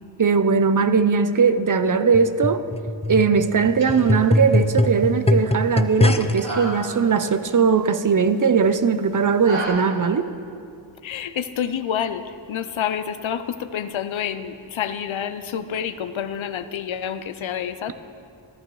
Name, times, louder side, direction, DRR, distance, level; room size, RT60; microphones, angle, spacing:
voice 1, 0.2-2.6 3.1-10.3, right 5 dB, 45° right, 11 dB, 0.6 m, -19 dB
sound 1, 2.1-6.5 7.3-7.4, left 1 dB, 15° left, 0.4 m, -22 dB
sound 2, 3.5-9.7, right 2 dB, 80° right, 3.3 m, -37 dB
voice 2, 11.0-17.9, left 8 dB, 85° left, 12 dB, 0.7 m, -28 dB
15.5 x 14.0 x 3.1 m, 2.4 s
wide cardioid pair, 100°, 46 cm